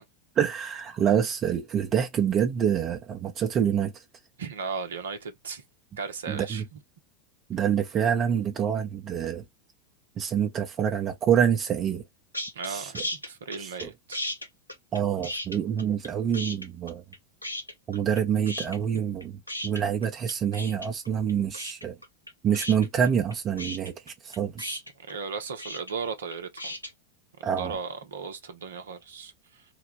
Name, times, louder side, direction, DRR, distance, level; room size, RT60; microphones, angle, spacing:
voice 1, 0.4-3.9 6.3-6.6 7.5-9.4 10.2-12.0 12.6-13.0 13.6-13.9 14.9-17.0 17.9-22.0 22.4-24.8 27.4-27.8, right 8 dB, 30° right, 0.8 m, -26 dB
voice 2, 4.4-5.6 6.0-6.8 12.5-14.2 25.0-26.8 27.6-29.6, right 5 dB, 65° right, 0.9 m, -36 dB
sound 1, 12.3-12.7 12.9-13.9 14.1-16.1 16.3-17.2 17.4-18.2 18.5-26.9, left 1 dB, 90° left, 0.6 m, -35 dB
3.9 x 2.2 x 3.3 m
figure-of-eight pair, 85°, 0 cm